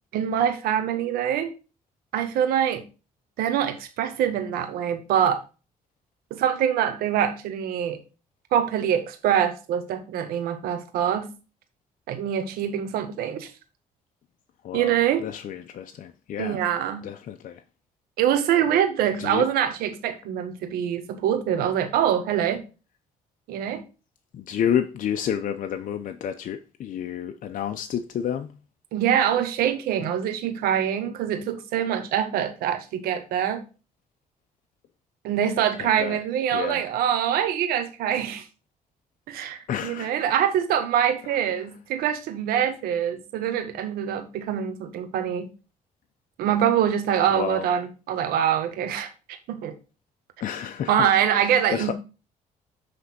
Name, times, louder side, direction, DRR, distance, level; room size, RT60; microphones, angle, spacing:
voice 1, 0.1-1.5 2.1-2.9 3.4-5.4 6.3-8.0 8.5-11.3 12.1-13.5 14.7-15.2 16.4-17.1 18.2-22.6 23.5-23.9 28.9-33.6 35.2-38.5 39.3-45.5 46.4-49.7 50.9-51.9, right 9 dB, 90° right, 1.2 m, -24 dB
voice 2, 14.6-16.6 17.0-17.6 19.2-19.5 24.3-28.5 35.8-36.2 36.5-36.8 39.7-40.3 47.3-47.7 50.4-51.1 51.4-51.9, left 9 dB, 60° left, 0.6 m, -30 dB
7.9 x 3.4 x 5.8 m
cardioid pair, 85°, 15 cm